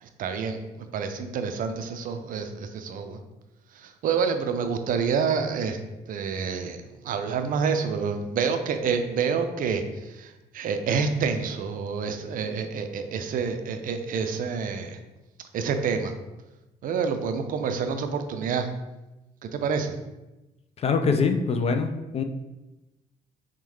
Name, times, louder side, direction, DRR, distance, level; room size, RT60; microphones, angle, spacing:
voice 1, 0.0-3.2 3.7-5.8 6.1-15.0 15.5-16.1 16.8-18.7 19.4-20.0, right 5 dB, 45° right, 7 dB, 0.5 m, -28 dB
voice 2, 20.8-22.2, left 5 dB, 30° left, 6 dB, 0.4 m, -24 dB
6.1 x 2.2 x 3.1 m, 1.0 s
figure-of-eight pair, 45°, 20 cm